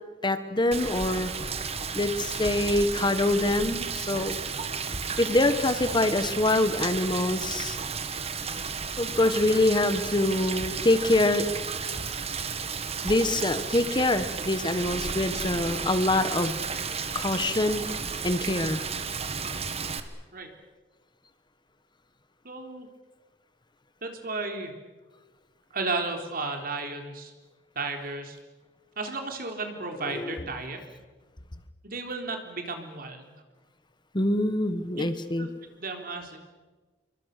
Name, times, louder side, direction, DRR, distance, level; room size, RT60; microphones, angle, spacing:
voice 1, 0.2-1.3 1.9-4.4 5.2-7.8 9.0-11.5 13.0-16.6 17.1-17.8 18.2-18.8 30.0-30.4 34.1-35.5, left 2 dB, 25° left, 10 dB, 1.3 m, -25 dB
Rain, 0.7-20.0, right 5 dB, 35° right, 1.6 m, -33 dB
voice 2, 22.4-22.9 24.0-24.7 25.7-27.3 27.8-28.4 29.0-30.8 31.8-33.3 34.9-35.1 35.4-35.5 35.8-36.4, right 3 dB, 55° right, 4 dB, 3.7 m, -34 dB
27.5 x 24.0 x 6.7 m, 1.3 s
head